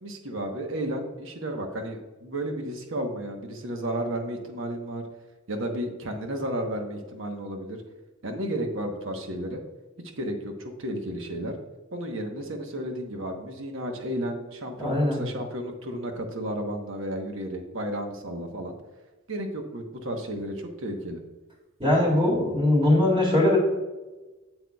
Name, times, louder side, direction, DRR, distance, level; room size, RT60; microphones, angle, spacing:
voice 1, 0.0-5.1 5.5-7.8 8.2-9.6 10.2-11.5 11.9-18.7 19.3-21.2, right 1 dB, 65° right, 4 dB, 1.1 m, -33 dB
voice 2, 14.8-15.2 21.8-23.6, left 1 dB, 25° right, -1 dB, 2.1 m, -21 dB
8.1 x 8.0 x 2.3 m, 1.2 s
head